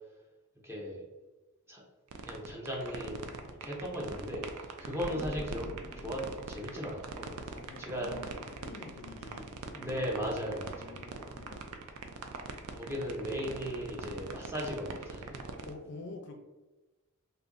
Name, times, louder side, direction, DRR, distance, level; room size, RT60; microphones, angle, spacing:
voice 1, 0.6-1.0 1.7-1.8 2.2-3.3 3.6-5.7 6.0-7.3 7.8-8.2 9.7-11.0 12.7-15.3, equal, 10° right, -2 dB, 0.6 m, -37 dB
sound 1, 2.1-15.7, right 5 dB, 80° right, 0.4 m, -42 dB
sound 2, 5.0-8.6, equal, 5° left, 1.2 m, -46 dB
voice 2, 7.5-8.3 8.6-10.1 10.7-11.7 15.6-16.4, left 3 dB, 50° left, 5 dB, 0.4 m, -48 dB
2.6 x 2.5 x 3.7 m, 1.1 s
head